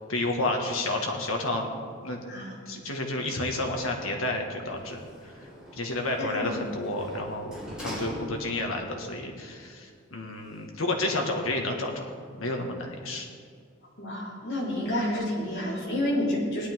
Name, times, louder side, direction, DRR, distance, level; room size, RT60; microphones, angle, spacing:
voice 1, 0.1-1.7 2.0-2.2 2.7-5.3 5.7-12.1 12.4-13.3, left 2 dB, 90° left, 2 dB, 1.8 m, -30 dB
Sliding door, 4.6-8.8 9.2-9.3, equal, 5° right, 3.6 m, -42 dB
voice 2, 6.2-6.5 14.0-16.7, left 1 dB, 55° left, -6 dB, 4.1 m, -29 dB
18.0 x 11.5 x 3.7 m, 2.1 s
head